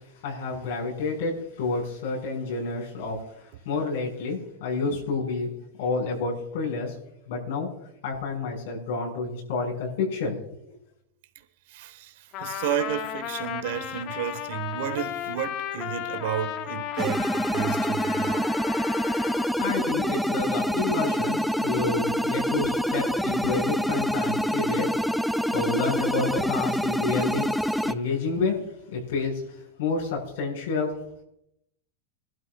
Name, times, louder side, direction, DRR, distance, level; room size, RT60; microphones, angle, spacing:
voice 1, 0.2-1.3 1.6-3.2 3.7-5.5 5.8-7.0 7.3-7.7 8.0-10.4 19.2-27.5 27.8-28.6 28.9-29.4 29.8-30.9, left 4 dB, 75° left, 5.7 m, -29 dB
voice 2, 11.7-12.1 12.4-18.5, right 10 dB, 70° right, 1.3 m, -32 dB
Trumpet, 12.3-19.5, left 10 dB, 45° left, 0.9 m, -35 dB
sound 1, 17.0-27.9, equal, ahead, 0.5 m, -26 dB
22.5 x 12.5 x 2.4 m
supercardioid pair, 130°, 0 cm